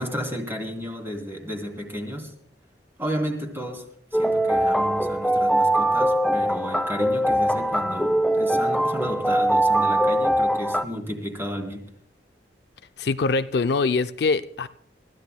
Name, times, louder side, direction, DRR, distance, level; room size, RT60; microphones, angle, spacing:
voice 1, 0.0-2.3 3.0-11.9, equal, 15° right, 3.0 m, -32 dB
sound 1, 4.1-10.8, right 1 dB, 5° left, 0.5 m, -22 dB
voice 2, 13.0-14.7, left 4 dB, 65° left, 0.5 m, -23 dB
29.5 x 14.5 x 2.2 m
head